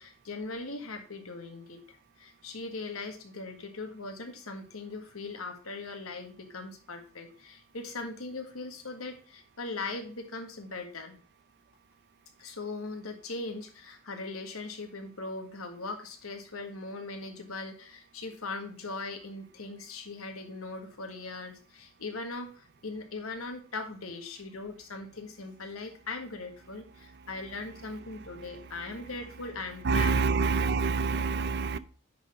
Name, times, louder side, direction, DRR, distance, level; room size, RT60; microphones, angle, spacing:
voice 1, 0.0-1.8 2.2-11.2 12.4-30.2, left 3 dB, 80° left, 5 dB, 1.7 m, -40 dB
voice 2, 29.8-31.8, right 4 dB, 50° right, 15 dB, 0.5 m, -26 dB
10.5 x 4.2 x 4.9 m, 0.40 s
head